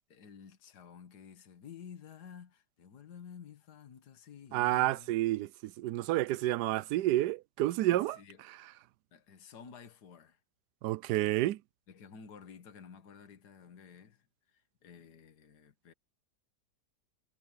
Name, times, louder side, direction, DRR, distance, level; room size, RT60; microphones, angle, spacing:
voice 1, 0.1-5.1 8.2-8.4 9.1-10.4 11.9-15.9, left 7 dB, 60° left, 2.0 m, -52 dB
voice 2, 4.5-8.2 8.5-8.7 10.8-11.6, right 15 dB, 70° right, 1.1 m, -30 dB
omnidirectional pair, 2.0 m